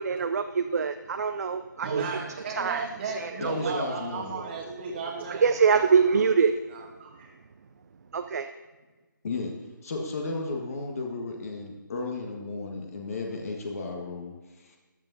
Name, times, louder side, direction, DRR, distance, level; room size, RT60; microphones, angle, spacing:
voice 1, 0.0-2.0 2.6-2.8 3.2-3.5 5.4-6.5 8.1-8.5, right 6 dB, 50° right, 8 dB, 0.5 m, -24 dB
voice 2, 1.8-6.2 6.7-7.3, right 4 dB, 35° right, -2 dB, 1.4 m, -36 dB
voice 3, 3.4-4.4 9.2-9.5 9.8-14.8, left 3 dB, 45° left, 1 dB, 1.6 m, -34 dB
15.5 x 10.5 x 2.7 m, 1.2 s
figure-of-eight pair, 155°, 11 cm